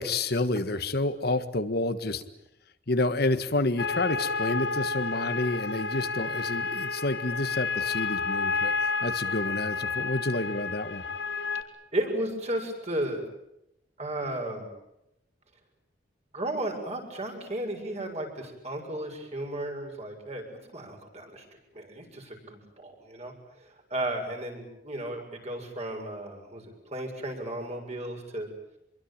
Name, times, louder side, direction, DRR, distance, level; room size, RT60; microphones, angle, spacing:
voice 1, 0.0-2.2 2.9-11.0, left 2 dB, 60° left, 10 dB, 1.6 m, -29 dB
sound 1, 3.8-11.6, left 4 dB, 75° left, 1.8 m, -30 dB
voice 2, 11.9-13.3 14.0-14.7 16.3-20.4 20.7-21.5 21.7-23.3 23.6-28.5, right 1 dB, 35° right, 3 dB, 7.1 m, -34 dB
26.5 x 23.0 x 8.8 m, 0.86 s
head